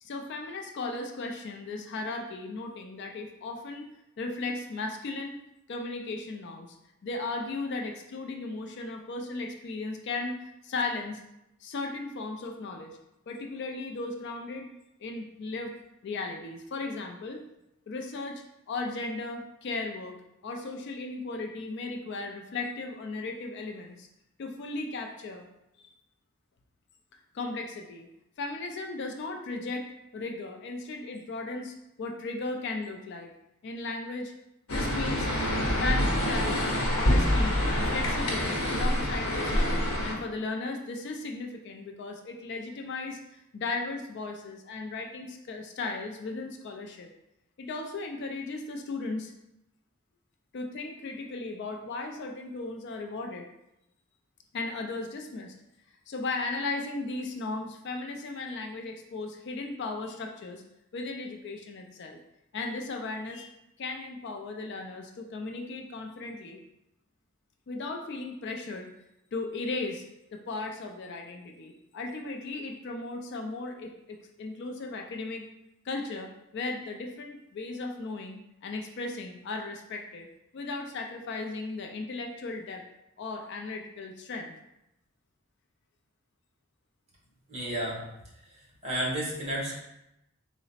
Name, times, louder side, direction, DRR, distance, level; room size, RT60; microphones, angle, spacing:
voice 1, 0.0-3.9 4.2-5.4 5.7-6.8 7.0-11.2 11.6-13.0 13.3-14.7 15.0-15.7 16.0-17.4 17.9-20.2 20.4-24.1 24.4-25.4 25.8-25.9 27.3-28.1 28.4-29.9 30.1-33.3 33.6-34.3 34.7-35.3 35.8-47.1 47.6-49.3 50.5-53.5 54.5-55.5 56.1-60.6 60.9-62.2 62.5-66.6 67.7-68.9 69.3-70.0 70.3-75.5 75.8-80.3 80.5-82.8 83.2-84.5, left 3 dB, 50° left, 3 dB, 0.3 m, -36 dB
sound 1, 34.7-40.1, equal, 75° left, 0.9 m, -26 dB
voice 2, 87.5-88.0 88.8-89.8, right 1 dB, 30° right, -4 dB, 1.0 m, -31 dB
3.9 x 2.0 x 4.0 m, 0.87 s
head